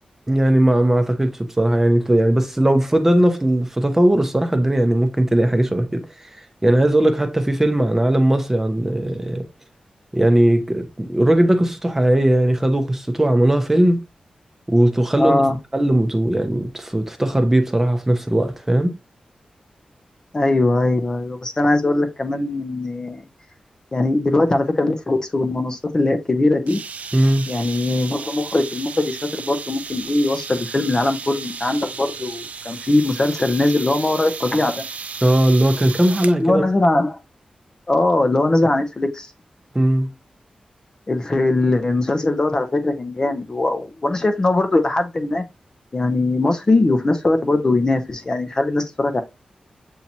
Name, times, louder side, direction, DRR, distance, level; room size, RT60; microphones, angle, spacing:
voice 1, 0.3-6.1 6.6-9.5 10.1-14.0 14.7-18.9 27.1-27.5 35.2-36.7 39.7-40.1, right 1 dB, 15° right, 0.6 m, -18 dB
voice 2, 15.2-15.6 20.3-23.2 23.9-26.8 27.5-34.8 36.4-37.2 37.9-39.3 41.1-45.4 45.9-49.2, left 2 dB, 30° left, 0.6 m, -20 dB
sound 1, 26.7-36.4, right 5 dB, 70° right, 0.4 m, -34 dB
7.1 x 2.8 x 2.7 m
wide cardioid pair, 140°, 3 cm